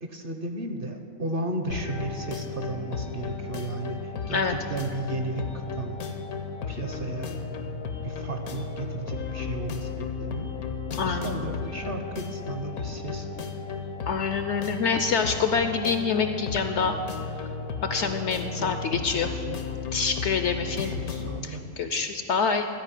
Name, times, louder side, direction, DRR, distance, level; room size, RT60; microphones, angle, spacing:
voice 1, 0.0-6.0 6.7-7.4 8.0-10.5 10.9-13.5 18.6-19.6 20.7-21.6, right 2 dB, 45° right, 5 dB, 0.8 m, -35 dB
sound 1, 1.7-21.4, left 5 dB, 85° left, 1.4 m, -34 dB
voice 2, 11.0-11.3 14.1-17.0 17.8-19.3 19.9-20.9 21.4-22.7, left 5 dB, 65° left, 8 dB, 0.7 m, -26 dB
13.5 x 5.1 x 9.1 m, 2.6 s
omnidirectional pair, 1.5 m